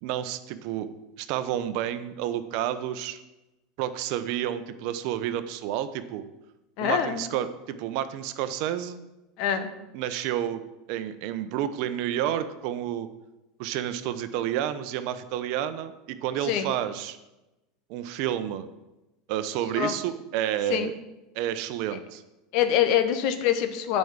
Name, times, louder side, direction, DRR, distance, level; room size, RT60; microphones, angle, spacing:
voice 1, 0.0-0.9 1.2-3.2 3.8-6.2 6.8-9.0 9.9-10.6 10.9-13.1 13.6-17.2 17.9-18.7 19.3-20.9 21.3-22.2, right 11 dB, 65° right, 11 dB, 0.8 m, -30 dB
voice 2, 6.8-7.2 9.4-9.7 16.4-16.7 19.7-19.9 20.7-20.9 22.5-24.0, left 9 dB, 60° left, 9 dB, 1.2 m, -24 dB
9.2 x 5.4 x 7.3 m, 0.99 s
supercardioid pair, 110°, 0 cm